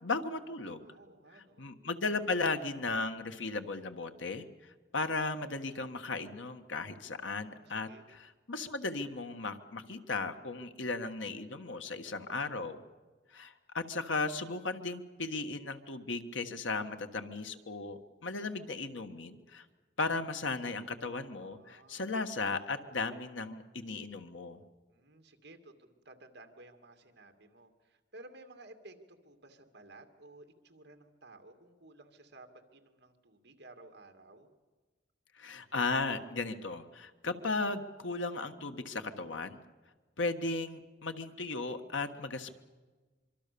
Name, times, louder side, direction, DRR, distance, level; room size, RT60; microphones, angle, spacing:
voice 1, 0.0-0.9 1.6-12.8 13.3-19.6 20.0-24.6 35.3-39.6 40.2-42.6, left 3 dB, 90° left, 8 dB, 1.5 m, -36 dB
voice 2, 0.8-1.7 7.4-8.0 21.4-22.1 24.9-34.5, right 2 dB, 60° right, 5 dB, 2.5 m, -55 dB
25.0 x 24.5 x 6.9 m, 1.3 s
head